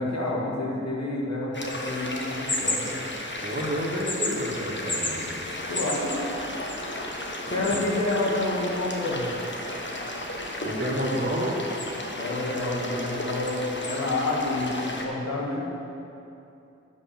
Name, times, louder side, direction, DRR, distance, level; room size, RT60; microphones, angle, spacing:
voice 1, 0.0-3.0 5.7-6.2 7.5-9.4 12.1-15.7, left 2 dB, 65° left, -4 dB, 2.0 m, -28 dB
sound 1, 1.5-15.0, left 1 dB, 40° left, 1.3 m, -33 dB
voice 2, 3.4-5.2 7.5-7.8 10.3-11.8, equal, 40° right, -3 dB, 2.0 m, -30 dB
11.0 x 5.8 x 5.9 m, 2.8 s
cardioid pair, 45°, 29 cm